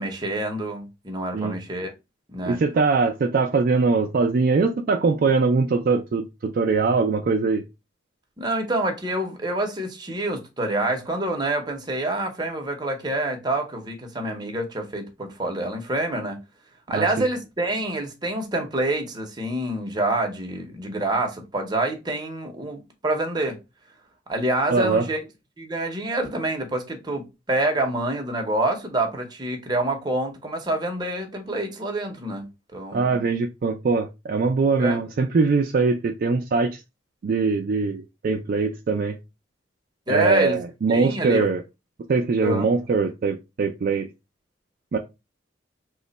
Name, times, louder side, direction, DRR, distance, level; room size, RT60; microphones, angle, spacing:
voice 1, 0.0-1.9 2.3-2.6 8.4-16.4 16.9-23.6 24.3-25.2 25.6-33.2 34.8-35.0 40.1-40.6 40.9-41.5 42.4-42.7, right 1 dB, 20° right, 0.7 m, -27 dB
voice 2, 2.5-7.6 16.9-17.1 24.7-25.1 32.9-36.8 37.2-39.2 40.1-41.6 42.1-44.1 44.9-45.0, right 4 dB, 50° right, 0.3 m, -22 dB
3.1 x 2.1 x 3.8 m
head